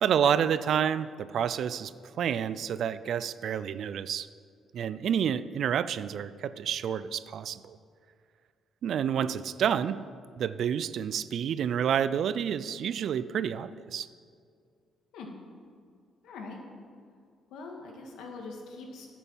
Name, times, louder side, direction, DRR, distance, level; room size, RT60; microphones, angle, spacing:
voice 1, 0.0-4.3 4.7-7.8 8.8-10.0 10.4-14.1, right 8 dB, 65° right, 15 dB, 0.4 m, -29 dB
voice 2, 16.2-16.6 17.5-19.1, left 3 dB, 85° left, 1 dB, 2.0 m, -42 dB
10.0 x 7.0 x 7.4 m, 2.2 s
cardioid pair, 90°, 0 cm